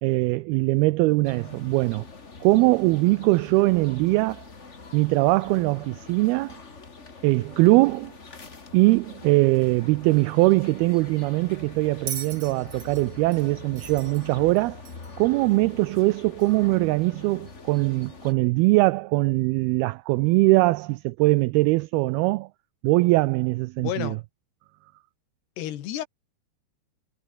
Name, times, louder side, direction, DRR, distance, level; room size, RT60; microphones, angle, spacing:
voice 1, 0.0-2.0 2.4-4.4 4.9-6.6 7.2-8.1 8.7-14.8 15.2-22.5 22.8-24.2, right 22 dB, 85° right, 2.2 m, -21 dB
sound 1, 1.2-18.3, left 4 dB, 30° left, 1.3 m, -44 dB
sound 2, 1.6-1.8 5.3-6.8 10.8-14.5 17.2-19.9, right 3 dB, 30° right, 6.6 m, -62 dB
Bell, 12.1-15.3 16.4-16.5, right 8 dB, 50° right, 1.4 m, -39 dB
voice 2, 23.8-24.2 25.6-26.1, left 12 dB, 70° left, 3.9 m, -31 dB
omnidirectional pair, 5.0 m